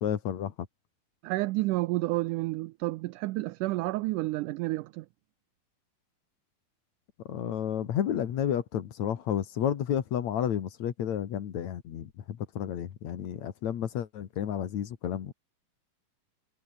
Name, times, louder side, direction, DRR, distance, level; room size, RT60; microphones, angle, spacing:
voice 1, 0.0-0.5 7.3-15.3, left 9 dB, 55° left, 2.6 m, -31 dB
voice 2, 1.2-5.1, right 19 dB, 80° right, 1.9 m, -30 dB
omnidirectional pair, 4.1 m